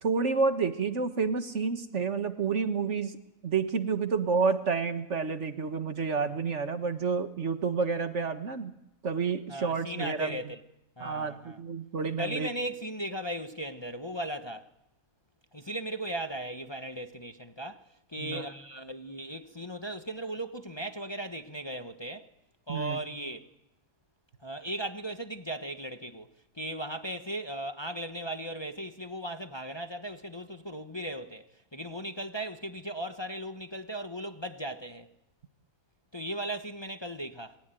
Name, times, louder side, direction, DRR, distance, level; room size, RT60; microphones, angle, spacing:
voice 1, 0.0-3.2 3.4-8.7 9.0-10.4 11.0-12.5 18.2-18.5 22.7-23.0, right 5 dB, 55° right, 1.8 m, -29 dB
voice 2, 9.5-10.6 11.0-11.6 12.2-14.7 15.5-22.3 22.7-23.5 24.4-26.3 26.5-35.1 36.1-37.6, right 1 dB, 20° left, 1.2 m, -37 dB
28.5 x 22.5 x 9.2 m
omnidirectional pair, 1.5 m